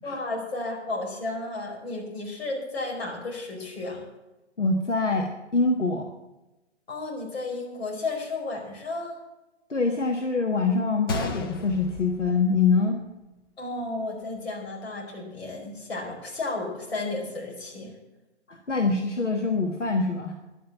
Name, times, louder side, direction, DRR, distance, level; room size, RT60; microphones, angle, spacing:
voice 1, 0.0-4.0 6.9-9.2 13.6-17.9, left 2 dB, 60° left, -1 dB, 5.1 m, -33 dB
voice 2, 4.6-6.1 9.7-13.0 18.5-20.4, left 4 dB, 90° left, 3 dB, 1.4 m, -24 dB
Gunshot gunfire, 11.1-13.1 13.4-13.5 14.2-14.4, left 3 dB, 20° left, 0.5 m, -34 dB
11.0 x 9.1 x 7.5 m, 1.0 s
figure-of-eight pair, 130°, 35 cm